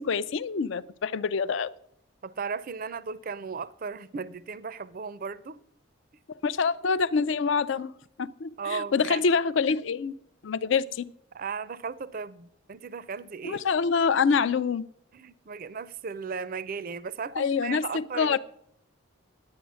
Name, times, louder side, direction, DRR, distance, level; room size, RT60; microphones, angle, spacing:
voice 1, 0.0-1.7 6.4-7.9 8.2-10.1 10.4-11.1 13.4-14.8 17.4-18.4, left 5 dB, 60° left, 0.4 m, -26 dB
voice 2, 2.2-5.6 8.6-9.2 11.3-13.6 15.1-18.4, right 5 dB, 40° right, 0.4 m, -36 dB
10.5 x 8.7 x 6.2 m
head